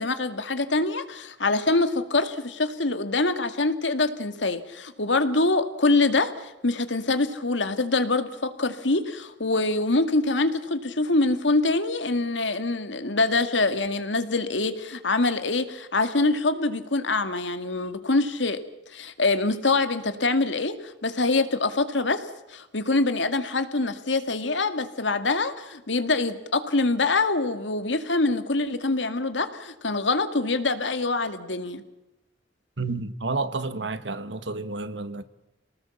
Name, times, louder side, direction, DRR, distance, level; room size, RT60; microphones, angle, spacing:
voice 1, 0.0-18.6 18.9-22.2 22.5-31.8, left 3 dB, 85° left, 2.1 m, -25 dB
voice 2, 32.8-35.2, right 3 dB, 75° right, 1.6 m, -30 dB
28.0 x 19.0 x 7.2 m
head